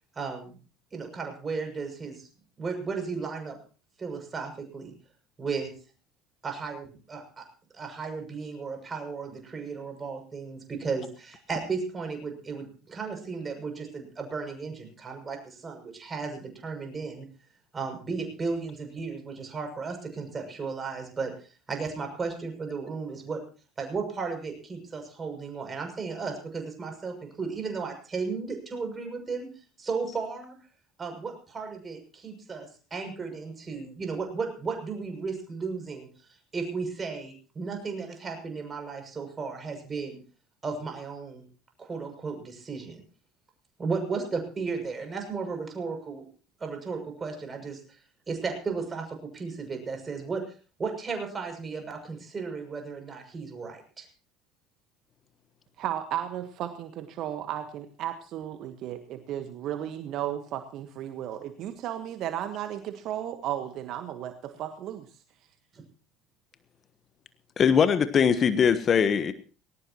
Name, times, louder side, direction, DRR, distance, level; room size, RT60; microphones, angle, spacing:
voice 1, 0.1-0.6 0.9-2.3 2.6-3.6 4.0-4.9 5.4-5.7 6.4-7.4 7.7-17.3 17.7-21.3 21.7-23.4 23.8-29.5 29.8-30.6 31.0-36.1 36.5-40.2 40.6-41.4 41.8-43.0 43.8-46.2 46.6-47.8 48.3-50.4 50.8-54.1, right 4 dB, 30° right, 4 dB, 6.8 m, -34 dB
voice 2, 55.8-65.1, right 11 dB, 55° right, 8 dB, 1.4 m, -34 dB
voice 3, 67.6-69.3, left 7 dB, 40° left, 12 dB, 1.3 m, -21 dB
20.5 x 18.5 x 3.0 m, 0.38 s
hypercardioid pair, 65°, 0 cm